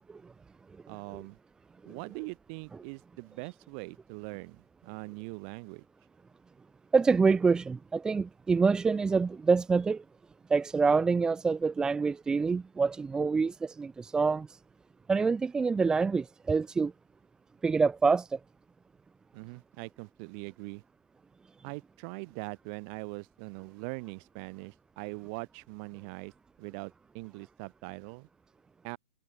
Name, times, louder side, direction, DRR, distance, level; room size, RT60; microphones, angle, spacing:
voice 1, 0.9-1.4 1.9-5.8 19.3-20.8 21.6-26.3 26.6-28.3 28.8-29.0, right 39 dB, 35° right, 2.5 m, -42 dB
voice 2, 6.9-10.0 10.5-14.6 15.1-16.9 17.6-18.4, right 4 dB, 10° right, 0.9 m, -26 dB
figure-of-eight pair, 115°, 8 cm